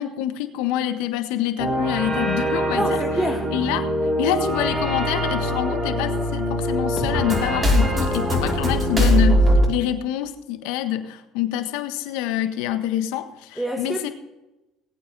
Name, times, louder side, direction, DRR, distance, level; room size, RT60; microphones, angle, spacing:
voice 1, 0.0-3.0 3.5-3.9 4.2-14.1, left 12 dB, 80° left, 9 dB, 1.4 m, -26 dB
sound 1, 1.6-9.7, equal, 25° right, 5.9 m, -22 dB
voice 2, 2.7-3.7 13.6-14.1, right 1 dB, 5° right, 2 dB, 1.9 m, -27 dB
20.0 x 9.0 x 4.2 m, 0.99 s
supercardioid pair, 90°, 0 cm